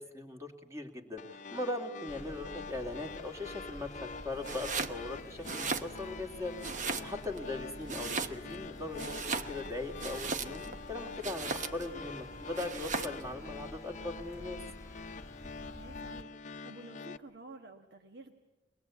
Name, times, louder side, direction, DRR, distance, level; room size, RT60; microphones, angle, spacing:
voice 1, 0.0-6.5 6.8-14.6, left 2 dB, 15° right, 3 dB, 2.4 m, -40 dB
sound 1, 1.2-17.2, left 4 dB, 45° left, 0.7 m, -46 dB
sound 2, 2.1-16.2, left 1 dB, 15° left, 1.3 m, -51 dB
Domestic sounds home sounds, 4.4-5.0 5.4-6.3 6.6-7.4 7.9-8.6 8.9-10.8 11.2-11.9 12.6-13.2, right 4 dB, 45° right, 1.1 m, -37 dB
voice 2, 15.8-18.3, right 2 dB, 65° right, 4 dB, 1.5 m, -51 dB
24.0 x 20.5 x 8.4 m, 1.1 s
head